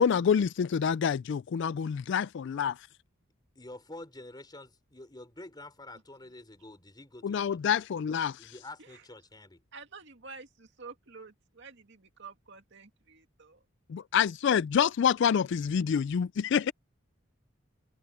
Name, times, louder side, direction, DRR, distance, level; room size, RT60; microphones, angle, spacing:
voice 1, 0.0-2.8 7.2-8.3 13.9-16.7, left 7 dB, 60° left, 0.3 m, -27 dB
voice 2, 3.5-9.6, left 2 dB, 20° left, 4.2 m, -48 dB
voice 3, 9.7-13.6, right 4 dB, 60° right, 2.3 m, -49 dB
head